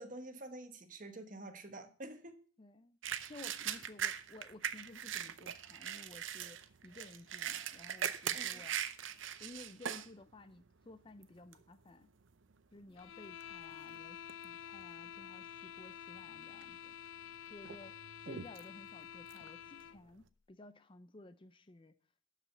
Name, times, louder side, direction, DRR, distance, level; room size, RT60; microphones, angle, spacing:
voice 1, 0.0-2.4 8.3-8.6, right 2 dB, 40° right, 1.2 m, -48 dB
voice 2, 2.6-3.0 3.3-8.8 9.4-12.1 12.7-16.9 17.5-22.0, left 2 dB, 25° left, 0.5 m, -55 dB
sound 1, 3.0-10.1 10.6-10.7 11.2-11.6 12.3-12.5 12.8-14.0 14.3-14.8 15.2-15.3 16.2-16.7 17.1-20.2, right 9 dB, 70° right, 0.6 m, -41 dB
sound 2, 13.0-20.0, left 10 dB, 75° left, 0.4 m, -50 dB
12.0 x 5.0 x 6.7 m
head